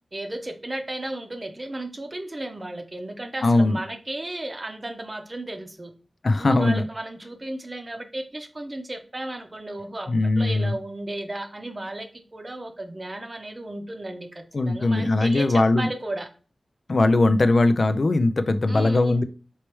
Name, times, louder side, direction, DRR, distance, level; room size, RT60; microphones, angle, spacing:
voice 1, 0.1-5.9 6.6-10.1 10.4-16.3 18.7-19.2, right 1 dB, 35° right, 0.7 m, -34 dB
voice 2, 3.4-3.8 6.2-6.9 10.1-10.8 14.5-15.9 16.9-19.2, left 2 dB, 60° left, 0.3 m, -20 dB
3.2 x 3.1 x 3.0 m
cardioid pair, 45°, 0 cm